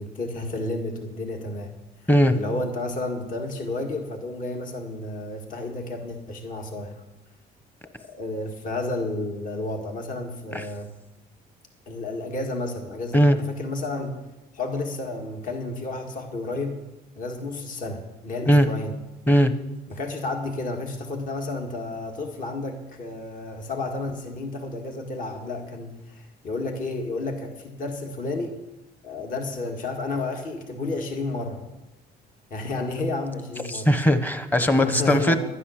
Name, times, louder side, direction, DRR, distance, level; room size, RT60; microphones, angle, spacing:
voice 1, 0.0-1.7 2.3-7.0 8.1-10.9 11.9-14.2 14.5-16.8 17.2-18.9 19.9-28.5 29.0-31.6 32.5-33.9 34.8-35.4, left 2 dB, 50° left, 2 dB, 2.0 m, -31 dB
voice 2, 33.7-35.4, equal, 10° left, 10 dB, 1.0 m, -19 dB
11.5 x 9.7 x 6.5 m, 0.98 s
cardioid pair, 110°, 17 cm